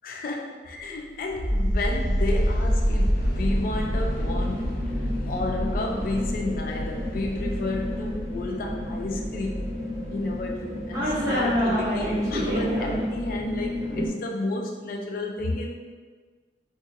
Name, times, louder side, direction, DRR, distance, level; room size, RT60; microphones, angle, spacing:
voice 1, 0.0-9.7 10.1-15.8, left 2 dB, 50° left, 1 dB, 0.3 m, -32 dB
sound 1, 1.3-14.1, equal, 20° right, 0.9 m, -27 dB
sound 2, 2.3-8.2, right 1 dB, 80° left, 1.1 m, -42 dB
2.5 x 2.5 x 3.9 m, 1.5 s
head